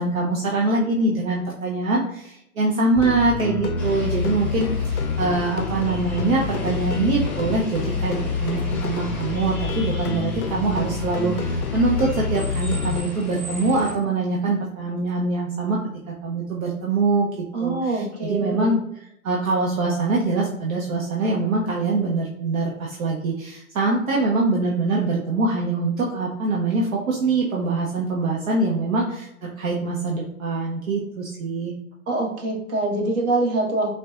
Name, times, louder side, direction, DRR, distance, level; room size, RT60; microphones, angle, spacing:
voice 1, 0.0-15.8 16.2-17.3 17.6-18.8 19.2-31.7, right 3 dB, 70° right, -3 dB, 0.7 m, -24 dB
sound 1, 3.0-13.0, left 5 dB, 85° left, 0.5 m, -27 dB
sound 2, 3.8-13.9, left 1 dB, 5° left, 0.7 m, -36 dB
voice 2, 17.5-18.8 32.1-33.9, right 2 dB, 55° right, -2 dB, 1.2 m, -24 dB
4.1 x 2.2 x 2.4 m, 0.80 s
hypercardioid pair, 125°, 42 cm